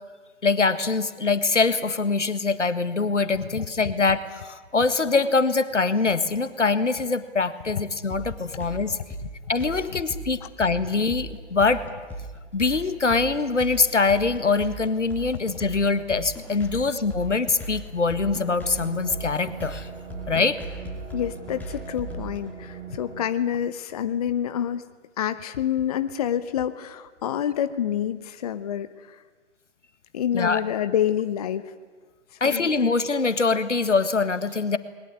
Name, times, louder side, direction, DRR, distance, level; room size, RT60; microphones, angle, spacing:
voice 1, 0.4-9.0 9.5-11.8 12.5-19.9 20.3-20.6 30.3-30.6 32.4-34.8, left 4 dB, 75° left, 13 dB, 1.7 m, -23 dB
sound 1, 8.1-22.4, right 1 dB, 5° left, 4.9 m, -37 dB
sound 2, 18.1-23.2, right 6 dB, 65° right, 5.3 m, -41 dB
voice 2, 21.1-24.8 25.2-28.9 30.1-31.7 32.4-32.7, left 10 dB, 30° left, 12 dB, 0.8 m, -27 dB
21.0 x 20.5 x 9.6 m, 1.4 s
figure-of-eight pair, 130°, 36 cm